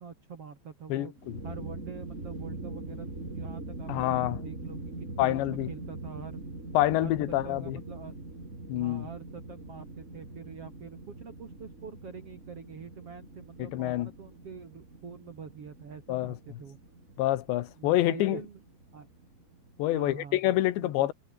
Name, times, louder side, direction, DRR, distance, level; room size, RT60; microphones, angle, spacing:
voice 1, 0.0-1.1 1.4-4.8 5.1-5.3 5.7-6.4 7.0-8.2 8.7-16.8 17.8-18.6 18.9-19.1 19.9-20.4 20.8-21.1, right 6 dB, 45° right, 2.3 m, -45 dB
voice 2, 0.9-1.4 3.9-4.4 5.2-5.7 6.8-7.8 8.7-9.1 13.6-14.1 16.1-16.6 17.2-18.4 19.8-21.1, left 15 dB, 85° left, 3.5 m, -27 dB
sound 1, 1.2-20.0, right 2 dB, 15° right, 4.6 m, -43 dB
omnidirectional pair, 5.0 m